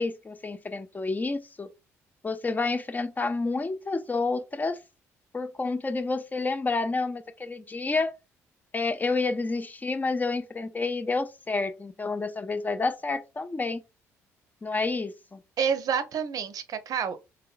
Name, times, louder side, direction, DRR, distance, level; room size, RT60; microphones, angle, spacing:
voice 1, 0.0-1.7 2.2-4.8 5.3-8.1 8.7-13.8 14.6-15.4, left 3 dB, 20° left, 0.5 m, -29 dB
voice 2, 15.6-17.2, right 7 dB, 50° right, 0.5 m, -28 dB
3.6 x 2.1 x 2.4 m
hypercardioid pair, 55°, 8 cm